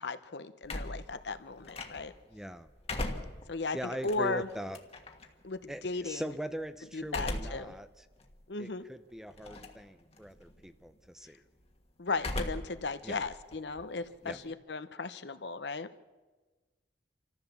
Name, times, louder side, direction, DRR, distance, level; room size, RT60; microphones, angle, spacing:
voice 1, 0.0-2.1 3.5-3.8 4.0-4.5 5.4-6.3 6.9-7.7 8.5-8.8 12.0-15.9, left 3 dB, 70° left, 12 dB, 0.9 m, -36 dB
sound 1, 0.6-2.3 2.7-5.3 7.0-7.7 8.2-8.3 9.4-9.9 10.2-10.6 12.2-12.8 13.1-14.5, left 1 dB, 35° left, 1.5 m, -38 dB
voice 2, 2.3-2.7 3.7-4.8 5.7-7.9 8.6-11.4 13.0-13.2 14.2-14.4, equal, 5° right, 11 dB, 0.6 m, -41 dB
26.0 x 14.0 x 7.2 m, 1.3 s
head